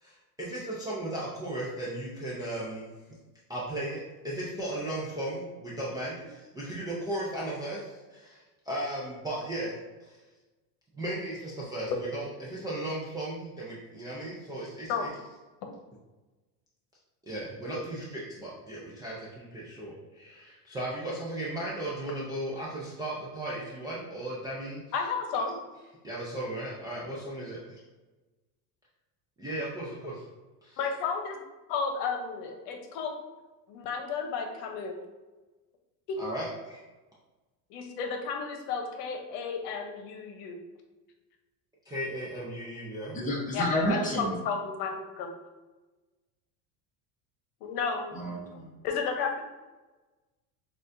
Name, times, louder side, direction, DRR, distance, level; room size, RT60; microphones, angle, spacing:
voice 1, 0.0-2.9 3.5-9.7 10.0-10.1 11.0-15.1 17.3-24.8 26.0-27.0 27.3-27.5 29.4-30.2 30.6-30.8 36.2-36.8 41.9-43.2, right 1 dB, 10° right, -8 dB, 0.3 m, -36 dB
voice 2, 24.9-25.5 30.8-31.4 31.7-33.1 33.7-35.0 36.1-36.2 37.7-40.6 43.5-45.3 47.6-48.1 48.8-49.4, left 5 dB, 85° left, 4 dB, 0.9 m, -32 dB
voice 3, 43.1-44.3 48.1-48.7, equal, 15° left, -4 dB, 1.0 m, -29 dB
6.4 x 2.5 x 2.5 m, 1.2 s
cardioid pair, 150°, 46 cm